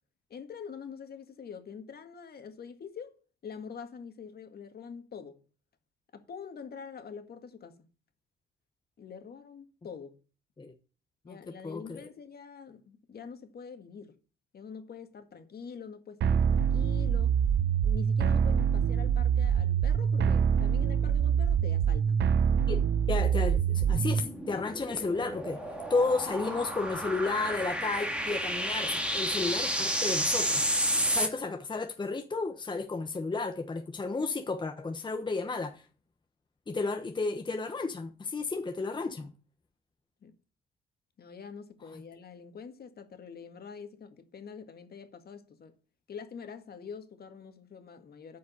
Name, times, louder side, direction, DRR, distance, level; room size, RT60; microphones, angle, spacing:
voice 1, 0.3-3.1 3.4-5.4 6.1-7.8 9.0-10.1 11.3-14.2 14.5-17.3 17.8-22.3 40.2-40.3 41.2-45.7 46.1-48.4, left 6 dB, 50° left, 1.9 m, -45 dB
voice 2, 11.6-12.0 22.7-25.6 25.9-35.8 36.7-39.3 41.9-42.0, left 3 dB, 25° left, 1.1 m, -32 dB
sound 1, 16.2-24.2, right 7 dB, 60° right, 0.9 m, -25 dB
sound 2, 23.8-31.3, equal, 5° right, 2.1 m, -31 dB
9.3 x 5.3 x 6.8 m
cardioid pair, 90°, 20 cm